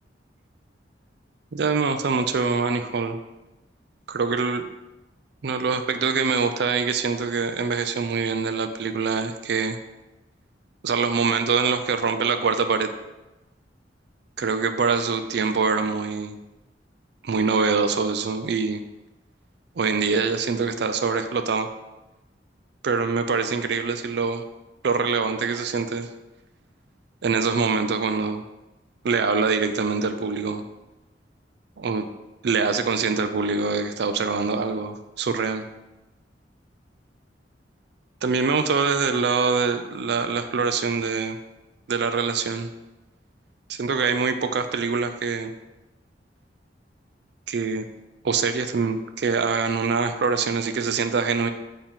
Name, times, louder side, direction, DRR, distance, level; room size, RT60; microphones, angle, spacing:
voice 1, 1.5-3.2 4.1-4.7 5.4-9.8 10.8-12.9 14.4-16.4 17.2-18.8 19.8-21.7 22.8-24.4 24.8-26.1 27.2-28.4 29.0-30.6 31.8-32.1 32.4-35.7 38.2-41.4 41.9-42.7 43.7-45.5 47.5-47.8 48.2-51.5, right 5 dB, 65° right, 8 dB, 0.5 m, -24 dB
6.7 x 2.9 x 5.6 m, 1.0 s
head